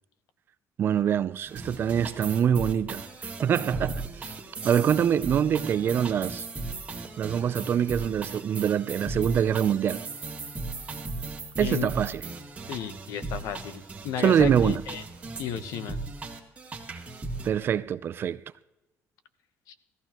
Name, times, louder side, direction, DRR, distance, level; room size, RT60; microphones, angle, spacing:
voice 1, 0.8-4.3 4.6-6.4 7.2-10.1 11.6-12.2 14.2-14.8 17.4-18.4, right 8 dB, 40° right, 0.4 m, -25 dB
sound 1, 1.5-17.5, right 3 dB, 20° right, 1.9 m, -37 dB
voice 2, 11.6-11.9 12.7-15.0 15.4-16.0 19.7-19.8, left 9 dB, 80° left, 1.0 m, -33 dB
18.0 x 14.0 x 3.0 m
cardioid pair, 160°, 6 cm